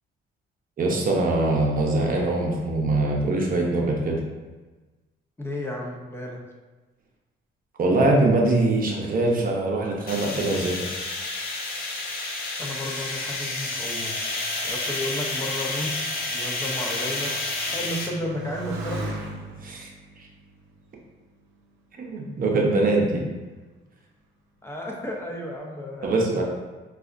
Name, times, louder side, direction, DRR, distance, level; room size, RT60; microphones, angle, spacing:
voice 1, 0.8-4.2 7.8-10.8 19.6-19.9 20.2-20.3 22.0-23.2 26.0-26.4, right 2 dB, 45° right, -1 dB, 0.7 m, -23 dB
voice 2, 5.4-6.4 12.6-14.1 14.6-17.4 17.7-19.0 24.6-26.3, left 1 dB, 10° left, -1 dB, 0.6 m, -33 dB
sound 1, 10.1-18.1, left 2 dB, 50° left, 0.7 m, -30 dB
Motorcycle, 13.2-22.0 22.7-23.3, right 2 dB, 85° right, 0.5 m, -41 dB
4.0 x 2.4 x 2.5 m, 1.2 s
cardioid pair, 90°, 20 cm